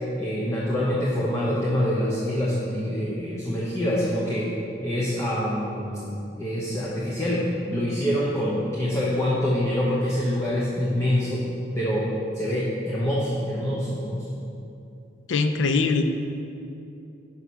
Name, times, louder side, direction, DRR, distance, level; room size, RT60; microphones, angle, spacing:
voice 1, 0.2-4.4 4.8-11.4 11.7-12.1 12.3-14.2, equal, 15° left, -7 dB, 0.8 m, -25 dB
voice 2, 15.3-16.0, left 4 dB, 90° left, 7 dB, 0.5 m, -22 dB
5.5 x 4.7 x 5.6 m, 2.7 s
head